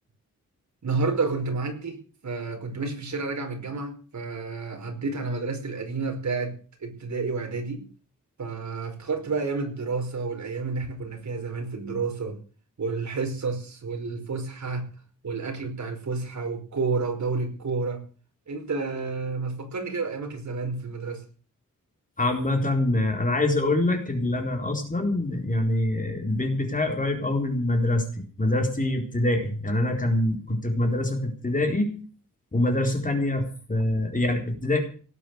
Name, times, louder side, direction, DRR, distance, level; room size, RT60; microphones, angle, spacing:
voice 1, 0.8-7.8 8.4-12.4 12.8-14.9 15.2-18.0 18.5-21.2, right 4 dB, 60° right, 4 dB, 5.2 m, -30 dB
voice 2, 22.2-31.9 32.5-34.8, left 1 dB, 25° left, 4 dB, 4.1 m, -25 dB
18.0 x 9.0 x 8.1 m, 0.40 s
wide cardioid pair, 115°, 32 cm